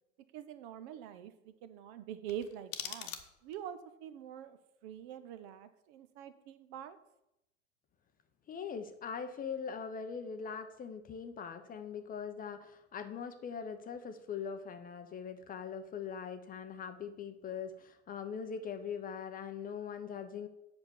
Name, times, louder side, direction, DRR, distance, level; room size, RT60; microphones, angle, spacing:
voice 1, 0.3-3.1 3.4-4.6 4.8-7.0, right 10 dB, 45° right, 11 dB, 0.9 m, -45 dB
sound 1, 2.2-3.7, left 10 dB, 45° left, 1.2 m, -44 dB
voice 2, 8.5-20.5, left 6 dB, 20° left, 8 dB, 0.8 m, -41 dB
8.0 x 6.0 x 7.0 m, 0.85 s
figure-of-eight pair, 85°, 40 cm